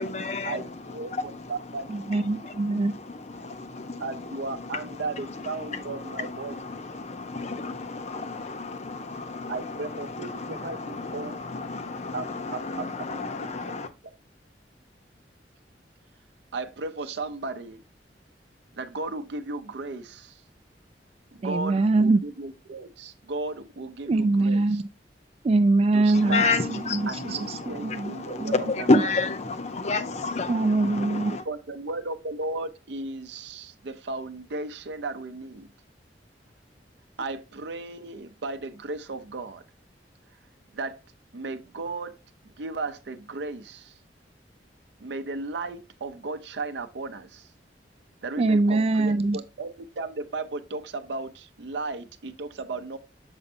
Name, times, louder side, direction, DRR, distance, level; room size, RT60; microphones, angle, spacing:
voice 1, 0.0-0.6 1.1-1.5 3.1-4.0 5.7-9.8 10.1-13.9 26.1-31.4, left 3 dB, 40° left, 0.7 m, -30 dB
voice 2, 0.9-1.8 4.0-6.6 9.5-11.3 12.1-13.5 16.5-17.8 18.8-20.4 21.3-24.8 25.9-26.7 27.1-27.8 28.1-29.1 31.4-35.7 37.2-39.6 40.7-41.0 41.3-42.2 42.6-43.9 45.0-47.5 48.2-53.0, right 3 dB, 85° right, 0.6 m, -35 dB
voice 3, 1.9-2.9 21.4-22.2 24.1-24.9 25.4-26.4 26.7-29.0 30.5-31.3 48.4-49.4, right 2 dB, 35° right, 0.3 m, -23 dB
7.0 x 5.4 x 2.6 m
head